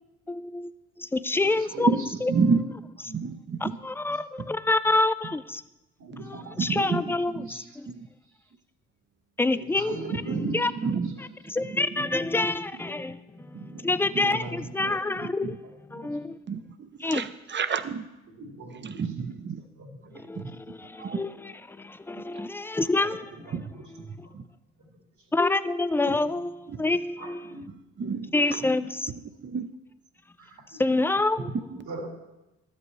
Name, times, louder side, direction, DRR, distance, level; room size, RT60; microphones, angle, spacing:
voice 1, 0.3-0.7 1.0-1.9 2.2-2.3 3.6-5.6 6.3-7.9 9.4-10.0 10.5-10.7 11.5-15.6 15.9-16.4 17.0-17.3 20.1-23.2 24.1-24.3 25.3-27.5 28.3-29.1 30.8-31.5, left 2 dB, 5° left, 14 dB, 0.4 m, -27 dB
voice 2, 1.3-2.0 3.1-3.2 6.0-7.6 9.5-10.6 10.9-11.0 13.7-15.0 15.9-16.2 18.3-19.0 19.8-20.3 23.0-23.1 23.5-23.8 24.2-24.3 27.2-27.7 28.0-28.1 30.4-30.8 31.9-32.1, right 2 dB, 65° right, 1 dB, 2.3 m, -39 dB
voice 3, 2.3-2.6 3.1-3.8 6.6-7.5 7.9-8.1 10.3-11.8 13.5-14.2 14.8-14.9 15.2-15.6 16.5-18.1 18.8-19.6 20.1-20.6 21.0-21.2 23.5-23.7 24.0-24.4 26.7-26.8 28.0-28.7 29.4-29.7 31.5-31.8, right 5 dB, 35° right, 12 dB, 0.7 m, -30 dB
13.0 x 8.3 x 3.2 m, 0.99 s
supercardioid pair, 60°, 32 cm